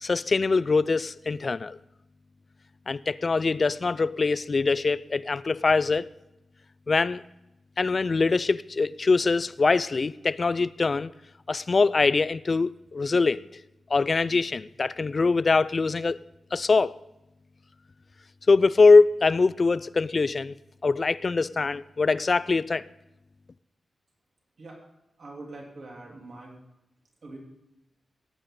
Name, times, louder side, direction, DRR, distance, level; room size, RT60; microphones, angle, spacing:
voice 1, 0.0-1.8 2.9-6.1 6.9-7.2 7.8-11.1 11.5-13.4 13.9-16.2 16.5-16.9 18.5-20.5 20.8-22.9, left 4 dB, 40° left, 0.3 m, -23 dB
voice 2, 25.2-26.5 27.2-27.4, right 2 dB, 55° right, 3.3 m, -43 dB
17.0 x 9.0 x 3.8 m
wide cardioid pair, 125°, 0 cm